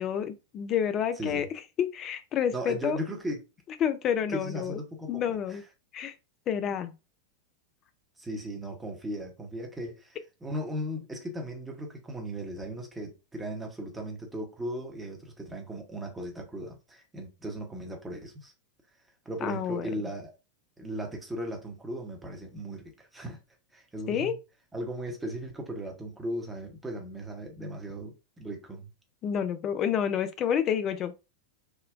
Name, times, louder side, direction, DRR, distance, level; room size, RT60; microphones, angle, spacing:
voice 1, 0.0-1.5 1.8-3.0 3.8-4.8 5.1-5.6 5.9-6.1 6.5-6.9 19.4-19.9 24.1-24.4 29.2-31.3, left 8 dB, 30° left, 0.3 m, -29 dB
voice 2, 1.2-1.5 2.5-3.4 4.3-5.2 5.5-5.6 8.2-18.5 19.2-20.3 20.8-23.4 23.7-24.4 24.7-28.9, right 1 dB, 10° right, 0.9 m, -37 dB
3.5 x 2.2 x 2.4 m
figure-of-eight pair, 90°, 0 cm